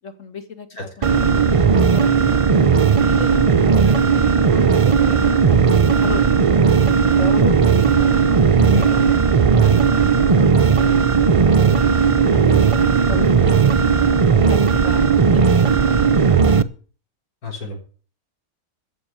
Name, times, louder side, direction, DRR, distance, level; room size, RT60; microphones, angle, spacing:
voice 1, 0.0-0.7 1.0-2.7 3.0-6.6 7.2-9.0 9.3-11.9 12.4-14.0 14.5-15.9, left 5 dB, 60° left, 8 dB, 2.3 m, -35 dB
sound 1, 1.0-16.6, right 6 dB, 55° right, 0.3 m, -15 dB
voice 2, 8.7-9.1 17.4-17.8, left 3 dB, 90° left, 0 dB, 4.3 m, -29 dB
14.5 x 6.2 x 9.2 m, 0.40 s
omnidirectional pair, 1.5 m